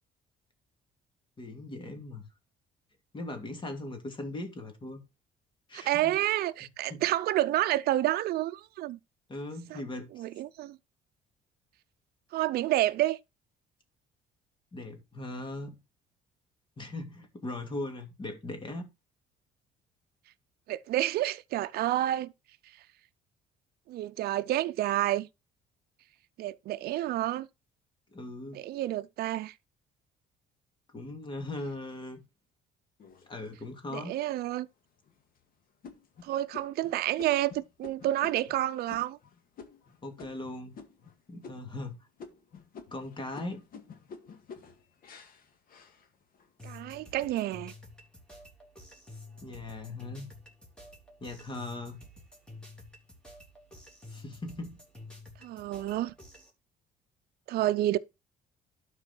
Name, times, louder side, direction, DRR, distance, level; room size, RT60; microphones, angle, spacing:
voice 1, 1.4-2.2 3.1-5.0 5.7-6.2 6.8-7.0 9.3-10.2 14.7-15.8 16.8-18.9 28.1-28.6 30.9-32.2 33.3-34.1 40.0-40.8 41.3-42.0 42.9-43.6 49.4-50.3 51.2-52.0 54.1-54.8, left 2 dB, 30° left, 2.7 m, -39 dB
voice 2, 5.7-9.0 9.7-9.8 10.2-10.8 12.3-13.2 20.7-22.3 23.9-25.3 26.4-27.5 28.5-29.5 33.9-34.7 36.2-39.2 46.6-47.7 55.4-56.1 57.5-58.0, right 14 dB, 65° right, 0.5 m, -29 dB
sound 1, 33.0-33.9 34.4-34.5 35.0-35.4 35.8-41.1 41.4-41.9 42.2-46.5 47.0-47.5, left 5 dB, 60° left, 2.0 m, -50 dB
sound 2, 46.6-56.5, left 2 dB, 5° left, 3.4 m, -50 dB
12.0 x 4.9 x 4.4 m
cardioid pair, 110°, 17 cm